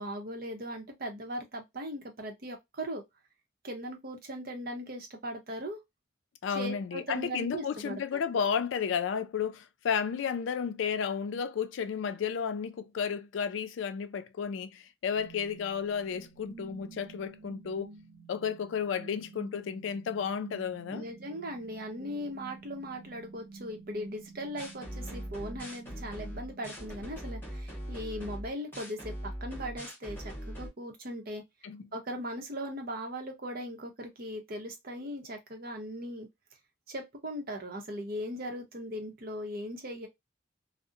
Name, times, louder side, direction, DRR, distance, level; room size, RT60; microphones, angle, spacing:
voice 1, 0.0-3.0 3.6-5.8 6.5-8.0 20.9-31.4 31.9-36.3 36.9-40.1, equal, 50° right, 0.7 m, -39 dB
voice 2, 6.4-17.9 18.3-21.0 31.6-31.8, left 7 dB, 75° left, 0.3 m, -32 dB
sound 1, 15.1-27.1, right 4 dB, 85° right, 0.4 m, -51 dB
sound 2, 24.6-30.7, equal, 10° left, 1.0 m, -41 dB
2.6 x 2.0 x 2.4 m
head